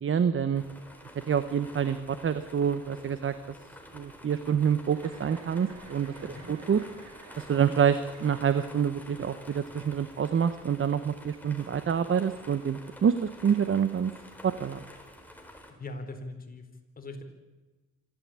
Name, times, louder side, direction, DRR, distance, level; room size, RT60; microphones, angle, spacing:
voice 1, 0.0-0.6 1.3-3.3 3.9-6.1 6.5-6.8 7.4-14.1 14.4-14.8, right 7 dB, 45° right, 12 dB, 1.1 m, -27 dB
sound 1, 0.5-15.7, left 1 dB, 5° left, 4.3 m, -49 dB
Chuckle chortle, 4.9-9.0, right 4 dB, 60° right, 4.4 m, -51 dB
voice 2, 15.8-16.7 17.0-17.2, left 2 dB, 30° left, 4 dB, 4.2 m, -40 dB
26.0 x 13.0 x 8.8 m, 1.2 s
cardioid pair, 90°, 30 cm